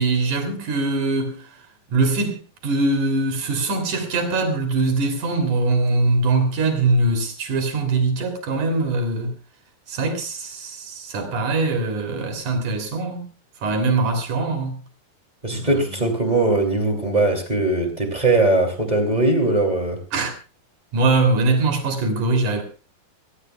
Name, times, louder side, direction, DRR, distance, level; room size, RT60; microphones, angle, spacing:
voice 1, 0.0-1.4 1.9-9.4 9.9-13.2 13.6-14.8 15.5-16.1 20.1-20.3 20.9-22.6, right 3 dB, 50° right, 4.3 m, -22 dB
voice 2, 15.4-20.0, right 2 dB, 15° right, 1.9 m, -20 dB
25.0 x 16.5 x 2.3 m
omnidirectional pair, 4.6 m